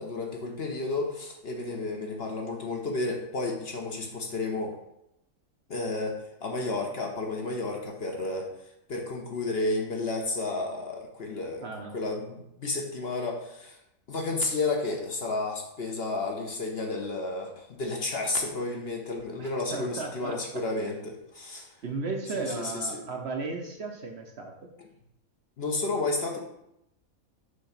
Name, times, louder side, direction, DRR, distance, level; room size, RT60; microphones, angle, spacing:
voice 1, 0.0-4.7 5.7-8.5 8.9-11.7 11.9-13.8 14.1-21.7 22.3-23.0 25.6-26.4, left 2 dB, 50° left, 1 dB, 1.0 m, -32 dB
voice 2, 11.6-12.0 19.4-20.6 21.8-24.7, right 3 dB, 55° right, 2 dB, 0.9 m, -35 dB
6.4 x 3.0 x 5.7 m, 0.82 s
omnidirectional pair, 1.5 m